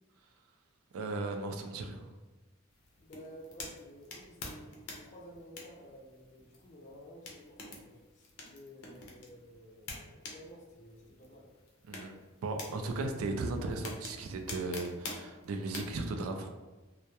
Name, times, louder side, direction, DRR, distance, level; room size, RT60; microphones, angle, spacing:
voice 1, 0.9-2.1 11.9-12.1 12.4-16.5, right 3 dB, 90° right, 5 dB, 0.3 m, -36 dB
sound 1, 2.7-16.0, left 3 dB, 85° left, 0.6 m, -48 dB
voice 2, 3.0-11.5, equal, 35° left, -2 dB, 0.4 m, -53 dB
2.2 x 2.1 x 2.8 m, 1.2 s
head